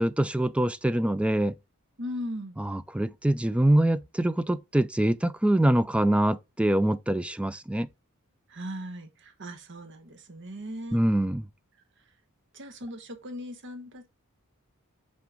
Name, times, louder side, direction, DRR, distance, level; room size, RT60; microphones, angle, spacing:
voice 1, 0.0-1.5 2.6-7.9 10.9-11.4, right 1 dB, 5° right, 0.4 m, -24 dB
voice 2, 2.0-2.6 8.5-11.1 12.5-14.1, equal, 55° right, 1.2 m, -38 dB
5.8 x 4.8 x 3.8 m
head